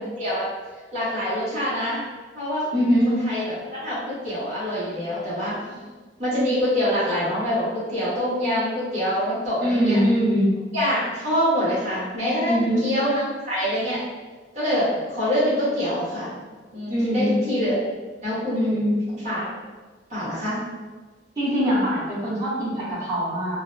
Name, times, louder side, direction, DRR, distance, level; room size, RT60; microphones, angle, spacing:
voice 1, 0.2-0.5 0.9-2.0 2.3-2.7 3.0-5.5 6.2-10.0 10.7-14.0 14.5-16.3 16.7-17.8 18.2-18.8 19.1-19.5 20.1-20.6, equal, 45° right, -11 dB, 1.2 m, -25 dB
voice 2, 2.7-3.2 9.6-10.5 12.4-12.8 16.9-17.4 18.5-19.0 21.4-23.6, equal, 20° right, -11 dB, 1.1 m, -22 dB
2.6 x 2.1 x 2.5 m, 1.3 s
head